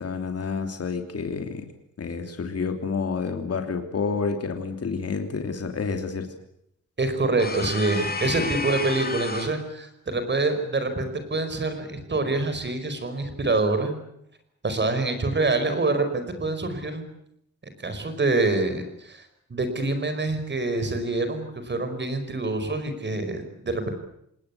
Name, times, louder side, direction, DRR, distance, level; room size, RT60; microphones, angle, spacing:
voice 1, 0.0-1.7 2.0-6.3 8.2-8.5, left 5 dB, 55° left, 5 dB, 3.1 m, -29 dB
voice 2, 7.0-14.0 14.6-17.0 17.8-19.2 19.5-23.9, right 2 dB, 40° right, 9 dB, 5.1 m, -26 dB
sound 1, 7.4-9.6, left 3 dB, 30° left, 3.7 m, -31 dB
27.5 x 20.0 x 8.4 m, 0.73 s
wide cardioid pair, 165°, 29 cm